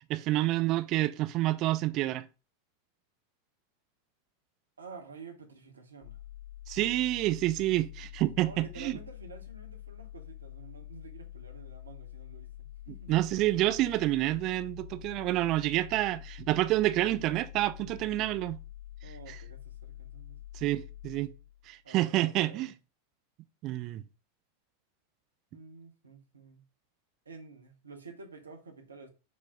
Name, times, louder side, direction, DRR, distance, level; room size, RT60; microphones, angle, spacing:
voice 1, 0.0-2.3 6.7-9.0 13.1-18.6 19.3-19.4 20.5-21.3 21.7-22.7 23.6-24.0, right 16 dB, 40° right, 0.3 m, -28 dB
voice 2, 4.8-6.2 8.4-13.1 19.0-20.4 21.8-22.7 25.5-26.6 27.2-29.1, right 4 dB, 75° right, 0.8 m, -50 dB
sound 1, 6.0-21.8, left 13 dB, 45° left, 1.4 m, -47 dB
4.7 x 2.0 x 4.1 m
figure-of-eight pair, 90°, 0 cm